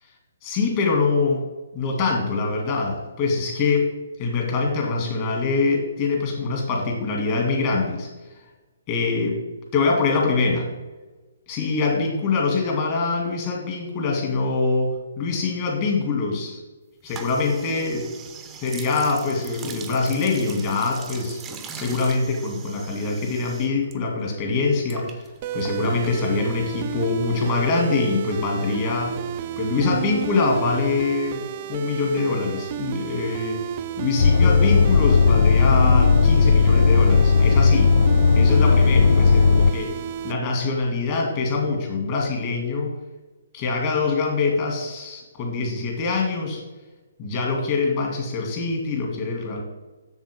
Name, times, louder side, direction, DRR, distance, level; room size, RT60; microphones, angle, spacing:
voice 1, 0.4-3.9 4.2-8.1 8.9-9.4 9.7-10.7 11.5-16.6 17.0-18.0 18.6-21.4 21.7-25.2 25.5-29.2 29.6-31.4 31.7-33.6 34.0-38.0 38.3-39.9 40.2-42.9 43.5-46.6 47.2-49.6, left 4 dB, 35° left, 0 dB, 2.4 m, -24 dB
sound 1, 17.0-24.0 24.2-26.6, right 6 dB, 15° right, 0.7 m, -41 dB
sound 2, 25.4-40.3, right 9 dB, 40° right, 0.4 m, -32 dB
sound 3, 34.2-39.7, left 5 dB, 60° left, 0.4 m, -16 dB
7.3 x 7.2 x 3.7 m, 1.2 s
hypercardioid pair, 145°, 0 cm